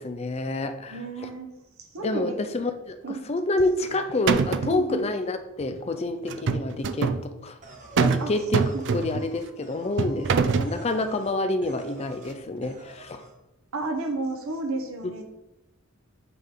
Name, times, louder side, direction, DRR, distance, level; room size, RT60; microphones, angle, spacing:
voice 1, 0.0-1.0 2.0-7.6 8.0-13.2 15.0-15.1, left 2 dB, 30° left, 9 dB, 0.5 m, -28 dB
voice 2, 0.9-1.5 1.8-2.3 3.0-3.3 4.7-5.0 8.2-8.3 13.7-15.2, right 2 dB, 80° right, 4 dB, 0.9 m, -31 dB
sound 1, 3.6-4.0 4.3-4.8 6.3-7.2 8.0-8.3 8.5-9.3 10.0-10.7, right 5 dB, 55° right, 0.4 m, -24 dB
sound 2, 7.6-11.4 11.6-12.3 12.6-13.3, right 1 dB, 40° right, 1.0 m, -47 dB
8.1 x 3.7 x 3.7 m, 0.94 s
head